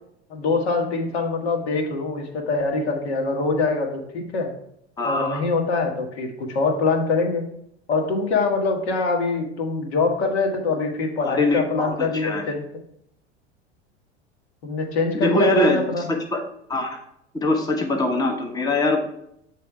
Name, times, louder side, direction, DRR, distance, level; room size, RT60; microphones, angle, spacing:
voice 1, 0.3-4.5 5.0-7.4 7.9-12.6 14.6-16.0, left 3 dB, 70° left, 2 dB, 1.4 m, -24 dB
voice 2, 5.0-5.4 11.2-12.4 15.1-16.4 16.7-17.0 17.3-19.0, left 2 dB, 10° left, 3 dB, 0.9 m, -23 dB
6.8 x 3.3 x 4.7 m, 0.74 s
hypercardioid pair, 85°, 33 cm